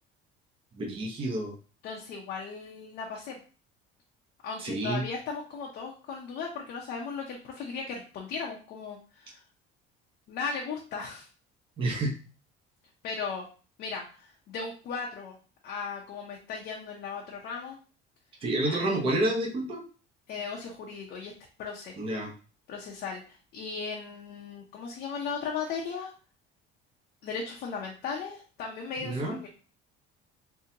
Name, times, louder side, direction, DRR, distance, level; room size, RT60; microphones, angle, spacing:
voice 1, 0.7-1.5 4.6-5.0 11.8-12.2 18.4-19.8 22.0-22.3 29.0-29.4, right 1 dB, 25° right, -1 dB, 0.8 m, -29 dB
voice 2, 1.8-3.4 4.4-9.4 10.3-11.3 13.0-13.5 13.8-15.4 15.6-17.8 18.7-18.8 20.3-21.3 21.6-21.9 22.7-26.1 27.2-29.5, left 5 dB, 45° left, -1 dB, 0.6 m, -37 dB
3.8 x 2.7 x 2.7 m, 0.37 s
cardioid pair, 180°, 21 cm